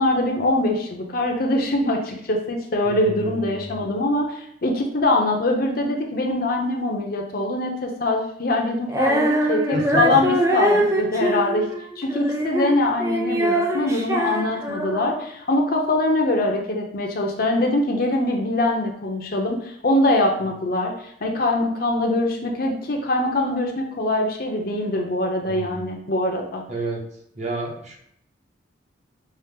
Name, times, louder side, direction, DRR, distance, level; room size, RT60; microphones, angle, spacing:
voice 1, 0.0-11.7 12.0-20.9 21.2-26.6, left 2 dB, 50° left, 2 dB, 0.6 m, -23 dB
voice 2, 2.8-3.8 9.7-10.2 25.5-26.0 26.7-27.0 27.3-28.0, right 1 dB, 40° right, -1 dB, 0.8 m, -31 dB
Female singing, 8.9-15.3, right 1 dB, 15° right, 0.4 m, -23 dB
5.4 x 2.0 x 3.6 m, 0.68 s
head